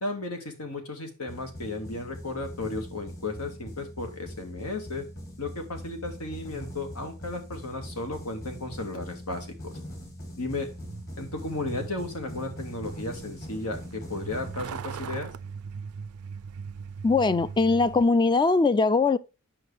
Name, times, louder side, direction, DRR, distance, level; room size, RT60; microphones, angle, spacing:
voice 1, 0.0-5.0 5.4-9.7 10.4-10.7 11.2-15.3, left 2 dB, 85° left, 1.9 m, -34 dB
sound 1, 1.3-15.2, equal, 45° left, 3.3 m, -42 dB
Truck, 10.4-18.0, right 6 dB, 70° right, 0.4 m, -40 dB
voice 2, 17.0-19.2, left 3 dB, 20° left, 0.3 m, -21 dB
7.9 x 5.5 x 3.3 m
head